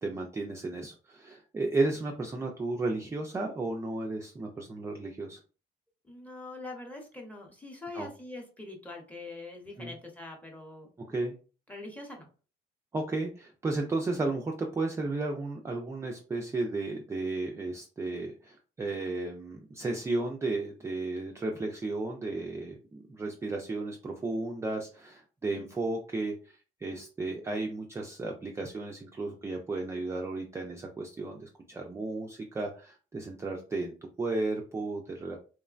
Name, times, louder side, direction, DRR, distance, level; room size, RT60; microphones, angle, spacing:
voice 1, 0.0-5.4 7.9-8.1 9.8-9.9 11.1-11.3 12.9-35.4, right 2 dB, 15° right, 1 dB, 0.3 m, -34 dB
voice 2, 6.0-10.9 11.7-12.3 25.4-25.7, left 2 dB, 10° left, 1 dB, 0.8 m, -43 dB
3.0 x 2.1 x 2.4 m, 0.36 s
cardioid pair, 110°, 17 cm